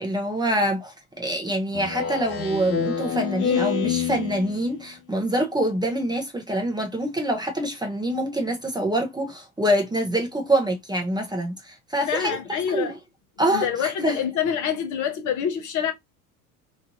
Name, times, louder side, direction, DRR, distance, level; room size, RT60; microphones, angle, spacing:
voice 1, 0.0-12.4 12.7-12.9 13.4-13.7 14.0-14.2, right 1 dB, 10° right, 0.8 m, -25 dB
Speech synthesizer, 1.7-4.8, left 7 dB, 85° left, 0.9 m, -27 dB
voice 2, 12.1-12.9 13.5-15.9, left 8 dB, 45° left, 0.9 m, -26 dB
3.1 x 2.5 x 2.5 m
hypercardioid pair, 70°, 43 cm